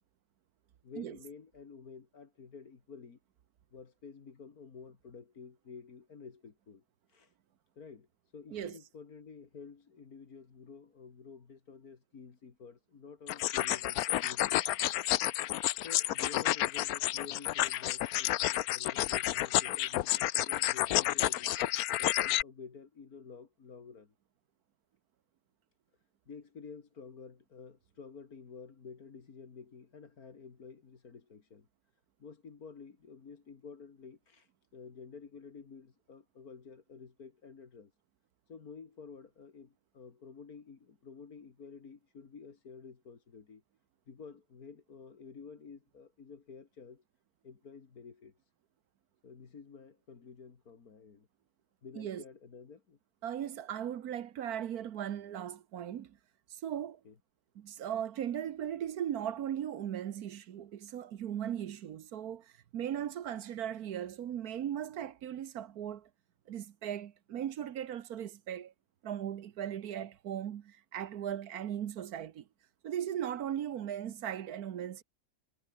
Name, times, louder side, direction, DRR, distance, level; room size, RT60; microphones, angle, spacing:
voice 1, 0.8-3.2 3.7-6.8 7.1-7.4 7.8-8.1 8.3-14.8 15.7-21.5 22.0-24.1 26.3-31.7 32.2-37.9 38.5-43.6 44.1-47.0 47.4-48.5 49.2-51.3 51.8-53.0 57.0-57.2, left 5 dB, 50° left, 2.4 m, -51 dB
sound 1, 13.3-22.4, left 14 dB, 70° left, 0.9 m, -30 dB
voice 2, 51.9-52.2 53.2-56.2 56.6-57.0 57.5-66.1 66.5-68.7 69.0-72.4 72.8-75.0, right 10 dB, 60° right, 1.2 m, -38 dB
omnidirectional pair, 2.1 m